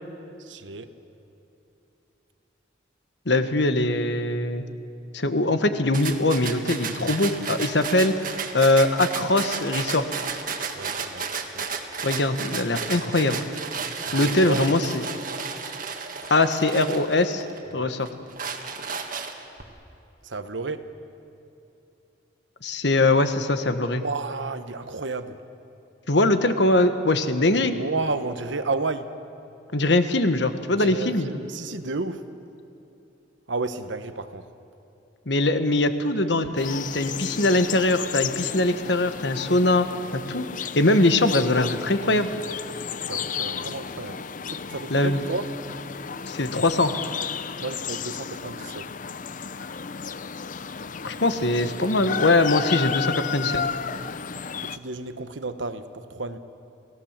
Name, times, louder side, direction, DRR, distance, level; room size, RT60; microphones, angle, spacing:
voice 1, 0.4-0.9 10.8-11.3 11.5-11.7 14.0-14.9 17.7-17.9 20.2-20.8 24.0-25.4 27.5-29.1 30.7-32.2 33.5-34.5 43.0-45.5 47.6-48.9 54.6-56.4, right 3 dB, 75° right, 10 dB, 1.1 m, -32 dB
voice 2, 3.2-4.6 5.1-8.1 8.5-10.1 12.0-13.4 14.1-15.0 16.3-17.4 17.7-18.1 22.6-24.0 26.1-27.7 29.7-31.3 35.3-39.9 40.1-40.5 40.7-42.3 44.9-45.3 46.3-46.9 51.0-53.6, left 2 dB, 60° left, 9 dB, 1.3 m, -22 dB
sound 1, 5.9-17.6 18.0-19.6, right 5 dB, 45° right, 1.7 m, -33 dB
sound 2, 36.6-54.8, left 7 dB, 45° left, 0.6 m, -33 dB
29.0 x 18.0 x 7.4 m, 2.9 s
head